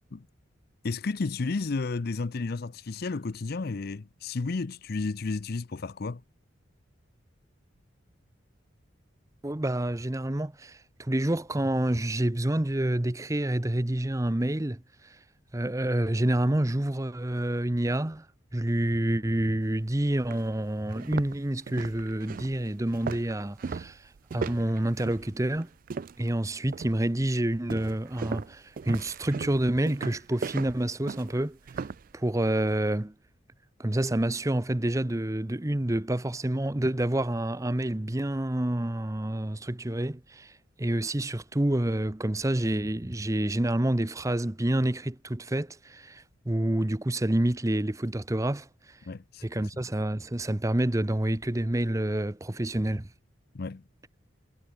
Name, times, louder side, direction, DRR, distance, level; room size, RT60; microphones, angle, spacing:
voice 1, 0.8-6.2 49.1-49.7 53.5-53.8, left 3 dB, 50° left, 0.5 m, -32 dB
voice 2, 9.4-14.8 15.5-18.3 18.5-24.0 24.3-25.7 26.2-31.6 32.1-33.1 33.8-40.5 40.8-48.7 49.4-53.1, right 1 dB, 15° right, 0.7 m, -28 dB
sound 1, 19.7-19.8 20.3-20.4 20.9-26.4 26.7-27.1 27.7-32.1, right 5 dB, 45° right, 0.3 m, -37 dB
head